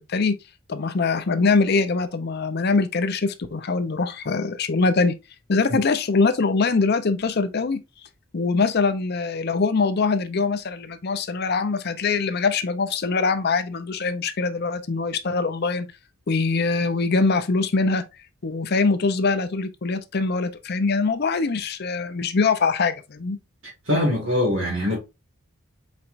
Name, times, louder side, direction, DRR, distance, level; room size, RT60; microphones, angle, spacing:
voice 1, 0.7-5.2 5.5-7.8 8.3-15.9 16.3-18.0 18.4-23.4, left 4 dB, 50° left, 0.5 m, -23 dB
voice 2, 23.9-25.0, left 1 dB, 70° right, 1.9 m, -22 dB
4.5 x 4.1 x 2.5 m
head